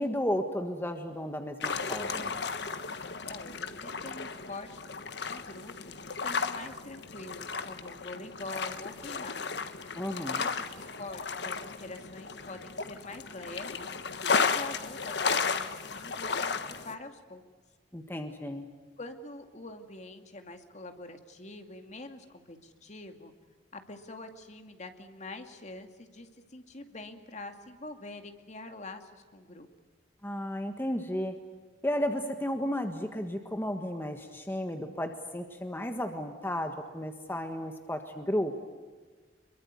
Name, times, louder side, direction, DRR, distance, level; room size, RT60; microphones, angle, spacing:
voice 1, 0.0-2.4 3.0-3.1 9.9-10.4 17.9-18.7 30.2-31.3 31.8-38.6, equal, 10° left, 5 dB, 1.5 m, -33 dB
sound 1, 1.6-16.9, left 5 dB, 65° left, 1.5 m, -34 dB
voice 2, 3.3-4.8 5.3-9.6 10.3-14.2 14.5-16.5 16.8-17.4 19.0-23.3 23.7-29.7, left 2 dB, 40° left, 6 dB, 2.3 m, -45 dB
26.5 x 23.0 x 9.6 m, 1.4 s
head